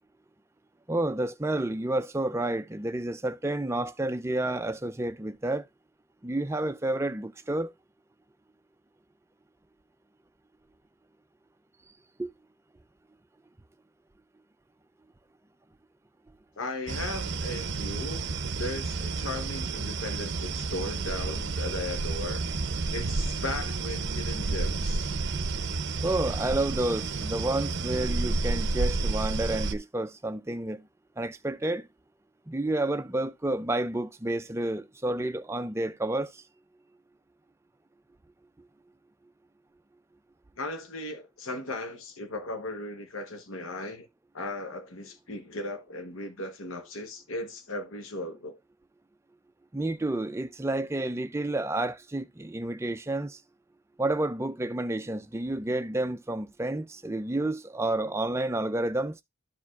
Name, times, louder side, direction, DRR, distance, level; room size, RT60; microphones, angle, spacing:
voice 1, 0.9-5.7 6.2-7.7 12.2-12.3 26.0-30.9 31.2-31.9 32.5-36.4 49.7-53.4 54.0-59.2, right 1 dB, 10° right, 0.4 m, -30 dB
voice 2, 16.6-18.3 18.6-22.5 22.9-25.1 40.6-44.1 44.3-48.6, left 2 dB, 65° left, 1.0 m, -37 dB
sound 1, 16.9-29.7, right 3 dB, 50° right, 0.6 m, -31 dB
12.5 x 4.8 x 2.3 m
head